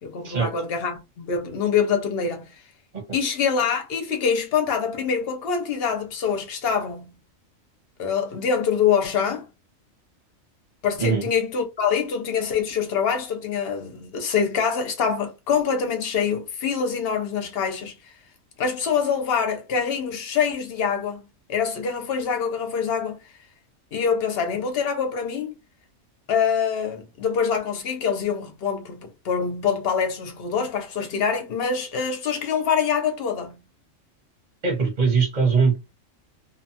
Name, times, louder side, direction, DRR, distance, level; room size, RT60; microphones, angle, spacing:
voice 1, 0.0-2.5 3.1-7.1 8.0-9.5 10.8-17.9 18.6-21.2 21.5-23.2 23.9-25.5 26.3-33.6, left 6 dB, 60° left, 0.7 m, -25 dB
voice 2, 34.6-35.8, right 5 dB, 35° right, 0.7 m, -21 dB
2.6 x 2.2 x 2.7 m
omnidirectional pair, 1.4 m